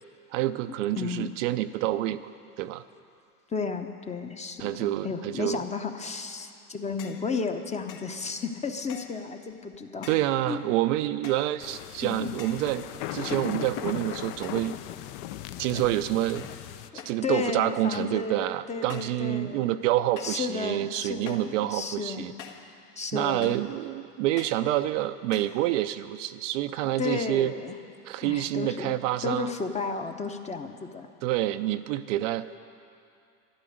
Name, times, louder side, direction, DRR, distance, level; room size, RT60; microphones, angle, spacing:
voice 1, 0.3-2.3 2.6-2.8 4.6-5.6 10.1-14.7 15.6-16.5 17.1-22.3 23.1-27.5 28.0-29.5 31.2-32.5, right 14 dB, 55° right, 11 dB, 0.5 m, -28 dB
voice 2, 1.0-1.3 3.5-10.1 10.5-10.6 12.0-12.3 15.8-15.9 17.2-19.7 20.2-22.3 23.0-23.5 26.8-27.8 28.2-31.1, left 5 dB, 15° left, 6 dB, 0.8 m, -33 dB
sound 1, 7.0-7.3 7.9-8.2 8.9-9.3 10.0-10.4 11.2-11.6 12.4-12.7 13.3-13.9 14.4-14.8 15.1-15.6 16.4-16.7 17.0-17.3 17.9-18.2 18.9-19.2 20.2-20.5 21.3-21.6 22.4-22.7 23.4-23.7 24.4-24.7 25.3-25.6, left 8 dB, 65° left, 1.6 m, -46 dB
sound 2, 11.6-16.9, left 13 dB, 45° left, 0.6 m, -37 dB
12.5 x 11.5 x 7.8 m, 2.5 s
hypercardioid pair, 105°, 47 cm